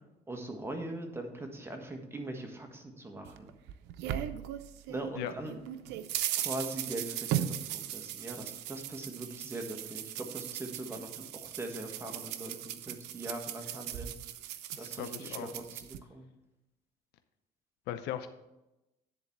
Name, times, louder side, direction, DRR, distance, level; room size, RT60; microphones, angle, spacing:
voice 1, 0.3-3.5 4.9-5.6 6.4-14.1 14.8-16.3, right 1 dB, 15° right, 3 dB, 1.5 m, -41 dB
sound 1, 3.3-5.1 5.5-16.0, right 12 dB, 90° right, 0.6 m, -38 dB
voice 2, 14.7-15.5 17.9-18.3, left 10 dB, 90° left, 9 dB, 0.6 m, -38 dB
10.0 x 4.0 x 7.2 m, 0.97 s
cardioid pair, 110°, 17 cm